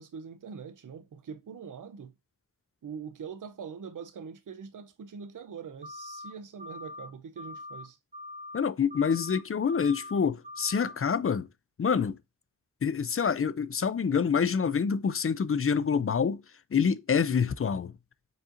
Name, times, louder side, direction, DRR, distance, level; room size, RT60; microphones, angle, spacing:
voice 1, 0.0-2.1 2.8-8.0, right 6 dB, 70° right, 0.5 m, -43 dB
sound 1, 5.8-6.3 6.6-7.1 7.4-7.8 8.1-8.6 8.9-9.4 9.7-10.2 10.4-10.9, left 2 dB, 25° right, 1.0 m, -43 dB
voice 2, 8.5-11.5 11.8-12.2 12.8-16.4 16.7-17.9, left 6 dB, 45° left, 0.4 m, -26 dB
4.9 x 4.3 x 2.5 m
wide cardioid pair, 55°, 33 cm